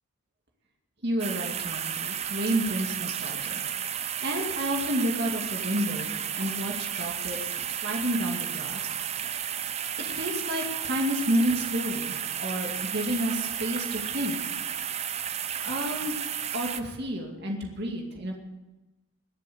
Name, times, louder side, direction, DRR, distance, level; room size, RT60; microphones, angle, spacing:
voice 1, 1.0-7.6 7.8-9.4 10.1-14.5 15.2-16.1 16.5-18.4, right 1 dB, 50° right, 0 dB, 2.3 m, -31 dB
sound 1, 1.2-16.8, right 9 dB, 30° right, 0.5 m, -33 dB
22.0 x 7.4 x 7.0 m, 1.1 s
head